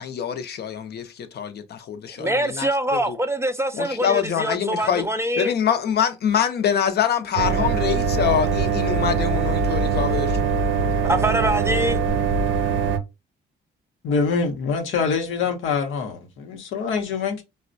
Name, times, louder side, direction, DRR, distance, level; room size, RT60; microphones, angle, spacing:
voice 1, 0.0-3.2 3.7-5.1 5.4-10.4, left 8 dB, 55° left, 0.6 m, -25 dB
voice 2, 2.2-5.5 11.0-12.0, right 1 dB, 15° right, 0.3 m, -24 dB
sound 1, 7.4-13.0, right 5 dB, 80° right, 0.5 m, -22 dB
voice 3, 14.0-17.4, left 5 dB, 85° left, 0.8 m, -25 dB
4.1 x 2.1 x 2.5 m
cardioid pair, 90°, 20 cm